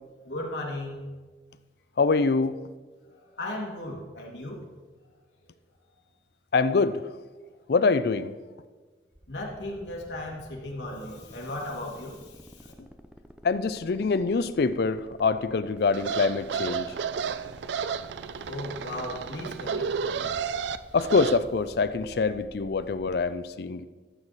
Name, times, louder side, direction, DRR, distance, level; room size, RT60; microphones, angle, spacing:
voice 1, 0.2-1.1 3.3-4.7 9.3-12.7 18.5-19.9, left 1 dB, 85° left, -1 dB, 2.0 m, -36 dB
voice 2, 2.0-2.6 6.5-7.1 7.7-8.4 13.4-16.9 20.9-23.9, left 4 dB, 60° left, 13 dB, 0.4 m, -25 dB
sound 1, 9.1-23.1, equal, 5° right, 0.5 m, -49 dB
sound 2, 15.9-21.4, right 6 dB, 85° right, 0.4 m, -32 dB
13.5 x 6.3 x 4.1 m, 1.3 s
head